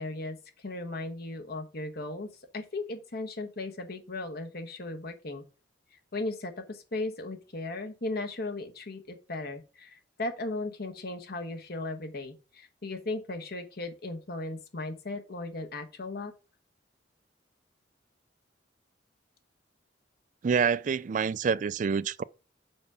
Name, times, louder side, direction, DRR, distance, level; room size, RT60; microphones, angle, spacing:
voice 1, 0.0-5.4 6.1-16.3, left 2 dB, 60° left, 1.2 m, -37 dB
voice 2, 20.4-22.2, right 6 dB, 45° right, 0.3 m, -27 dB
6.0 x 4.8 x 5.8 m
head